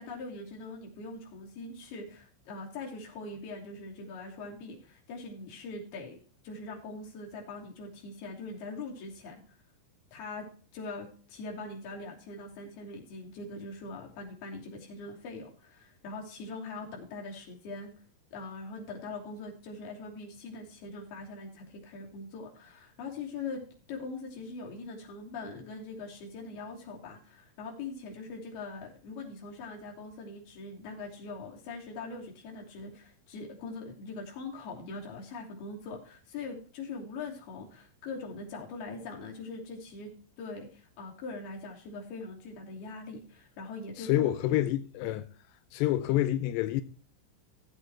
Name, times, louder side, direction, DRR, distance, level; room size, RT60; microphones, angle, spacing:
voice 1, 0.0-9.4 10.1-17.9 18.3-23.6 23.9-44.3 45.0-45.2, left 3 dB, 55° left, 4.5 m, -42 dB
voice 2, 44.0-45.2 45.7-46.8, left 14 dB, 85° left, 2.6 m, -27 dB
16.5 x 8.0 x 3.0 m
omnidirectional pair, 5.6 m